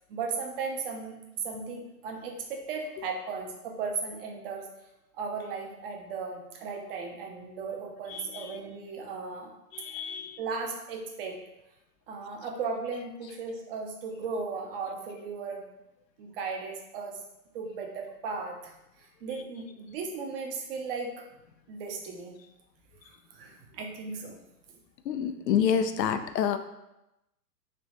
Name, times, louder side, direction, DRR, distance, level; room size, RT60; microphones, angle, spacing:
voice 1, 0.1-1.2 1.4-4.7 5.2-9.5 9.9-10.0 10.4-11.4 12.1-15.7 16.2-17.2 17.5-18.7 19.0-21.3 21.7-22.4 23.0-24.4, right 4 dB, 35° right, 2 dB, 0.7 m, -36 dB
voice 2, 8.1-8.4 9.7-10.4 25.1-26.6, left 8 dB, 80° left, 9 dB, 0.6 m, -28 dB
3.3 x 3.0 x 3.8 m, 0.90 s
hypercardioid pair, 120°, 49 cm